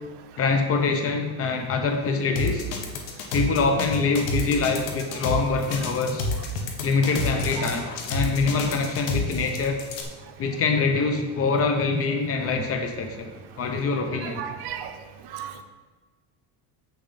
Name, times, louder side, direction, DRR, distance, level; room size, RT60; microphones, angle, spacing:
voice 1, 0.4-2.7 3.3-6.3 6.8-9.8 10.4-13.3 13.6-14.4, left 4 dB, 30° left, 4 dB, 1.0 m, -24 dB
sound 1, 2.4-10.0, left 3 dB, 75° left, 1.4 m, -29 dB
voice 2, 14.2-14.9 15.3-15.6, right 9 dB, 60° right, 6 dB, 1.0 m, -34 dB
7.7 x 6.5 x 4.2 m, 1.4 s
cardioid pair, 125°, 45 cm